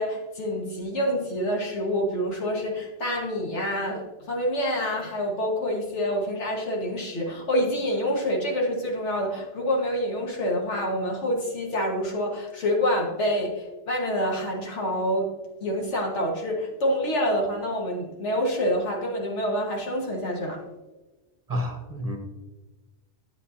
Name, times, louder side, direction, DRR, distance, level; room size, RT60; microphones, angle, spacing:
voice 1, 0.0-15.3 15.6-20.6, equal, 75° left, 0 dB, 1.9 m, -27 dB
voice 2, 21.5-22.2, equal, 35° right, 3 dB, 1.0 m, -29 dB
10.5 x 8.1 x 2.8 m, 1.1 s
omnidirectional pair, 1.2 m